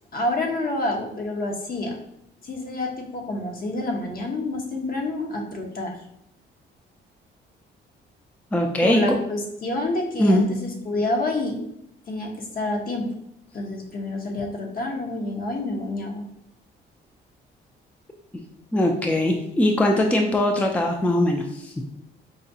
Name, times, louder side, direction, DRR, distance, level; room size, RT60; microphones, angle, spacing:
voice 1, 0.1-2.0 2.4-6.0 8.8-11.6 12.1-13.1 13.5-16.3, left 2 dB, 50° left, 1 dB, 0.9 m, -28 dB
voice 2, 8.5-9.0 10.2-10.5 18.7-21.7, left 1 dB, 5° left, 2 dB, 0.4 m, -21 dB
4.9 x 2.2 x 2.7 m, 0.76 s
cardioid pair, 90°, 20 cm